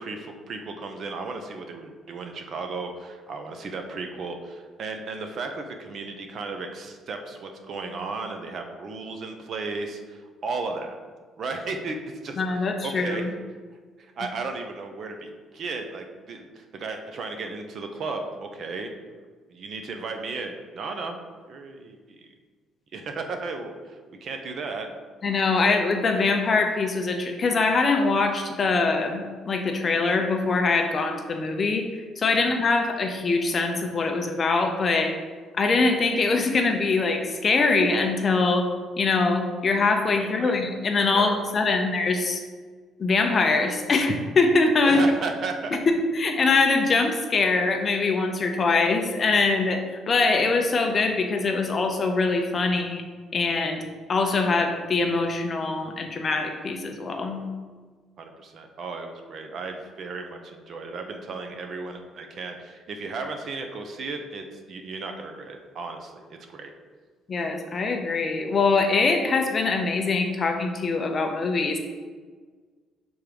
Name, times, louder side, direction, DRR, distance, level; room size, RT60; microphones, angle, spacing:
voice 1, 0.0-10.9 11.4-13.3 14.0-18.9 19.5-21.2 21.5-22.3 22.9-24.9 25.6-25.7 32.4-32.5 40.2-40.6 41.1-41.3 44.8-45.8 58.2-66.7, right 3 dB, 40° right, 5 dB, 0.6 m, -35 dB
voice 2, 12.4-13.3 25.2-31.9 32.2-35.2 35.6-38.7 39.0-42.4 43.0-45.1 45.9-53.0 53.3-57.5 67.3-71.8, left 3 dB, 30° left, 4 dB, 0.5 m, -23 dB
6.0 x 3.5 x 5.1 m, 1.5 s
cardioid pair, 175°, 0 cm